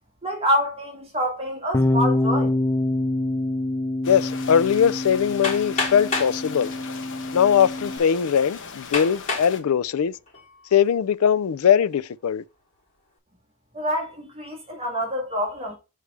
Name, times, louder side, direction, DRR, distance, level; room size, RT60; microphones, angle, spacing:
voice 1, 0.2-2.5 13.7-15.8, equal, 30° right, 2.0 m, -26 dB
Bass guitar, 1.7-8.0, left 1 dB, 10° left, 0.5 m, -26 dB
sound 1, 4.0-9.6, left 5 dB, 60° left, 1.0 m, -39 dB
voice 2, 4.1-6.7 7.3-10.1 10.7-12.4, left 8 dB, 80° left, 0.4 m, -20 dB
Hammer, 5.4-6.4 7.3-7.4 8.0-8.1 8.9-9.5 10.1-10.5, left 3 dB, 35° left, 3.5 m, -27 dB
6.6 x 4.9 x 3.4 m
head